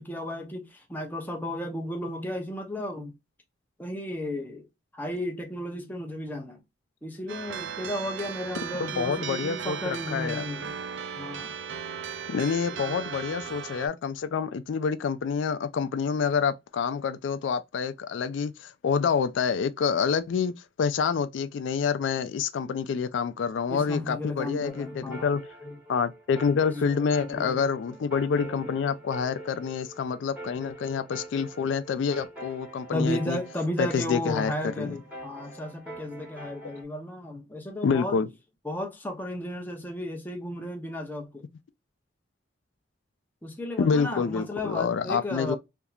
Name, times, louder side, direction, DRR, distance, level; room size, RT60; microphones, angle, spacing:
voice 1, 0.0-3.1 3.8-4.7 4.9-6.6 7.0-10.7 11.2-11.6 12.7-13.1 23.7-25.3 25.6-25.8 26.6-27.6 28.3-28.7 32.9-38.2 38.6-41.5 43.4-45.6, left 1 dB, 10° left, 0.7 m, -34 dB
sound 1, 7.3-13.9, right 7 dB, 65° right, 0.4 m, -36 dB
voice 2, 8.8-10.5 12.3-20.5 20.8-25.4 25.9-33.4 33.8-35.0 37.8-38.3 43.8-45.6, left 6 dB, 70° left, 0.3 m, -27 dB
sound 2, 24.7-36.8, right 1 dB, 10° right, 1.6 m, -44 dB
3.5 x 2.7 x 2.3 m
head